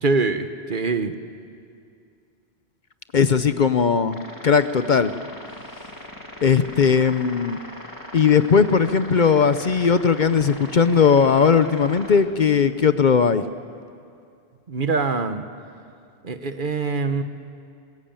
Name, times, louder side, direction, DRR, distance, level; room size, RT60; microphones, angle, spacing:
voice 1, 0.0-1.2 14.7-15.4 16.2-17.2, right 4 dB, 50° right, 9 dB, 1.2 m, -24 dB
voice 2, 3.1-4.2 4.4-5.1 6.4-7.6 8.1-13.4, left 6 dB, 50° left, 11 dB, 0.8 m, -18 dB
sound 1, 4.1-12.2, left 1 dB, 20° left, 2.7 m, -40 dB
22.0 x 21.5 x 8.9 m, 2.4 s
omnidirectional pair, 1.1 m